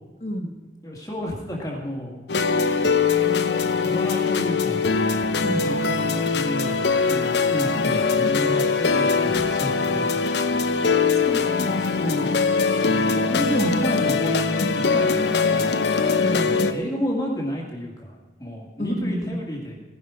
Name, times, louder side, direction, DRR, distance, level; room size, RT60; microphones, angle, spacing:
voice 1, 0.2-0.5 5.4-5.6 10.5-10.8 11.1-11.8 16.2-16.5 18.8-19.3, equal, 40° left, 3 dB, 1.5 m, -30 dB
voice 2, 0.8-2.2 3.8-5.0 5.6-6.8 7.1-10.3 11.8-15.7 16.4-19.8, equal, 20° left, -2 dB, 1.9 m, -31 dB
sound 1, 2.3-16.7, left 4 dB, 80° left, 0.9 m, -22 dB
16.5 x 11.0 x 5.0 m, 1.3 s
head